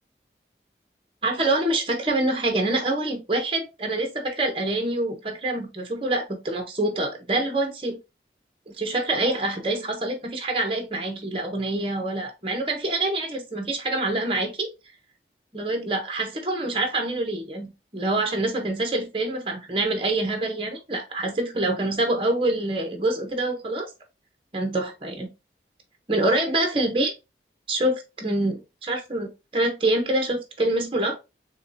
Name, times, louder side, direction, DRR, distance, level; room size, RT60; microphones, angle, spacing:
voice 1, 1.2-8.0 8.7-14.7 15.5-23.9 24.5-25.3 26.1-27.1 27.7-31.2, right 2 dB, 30° right, 4 dB, 1.0 m, -26 dB
6.4 x 2.3 x 2.7 m, 0.26 s
head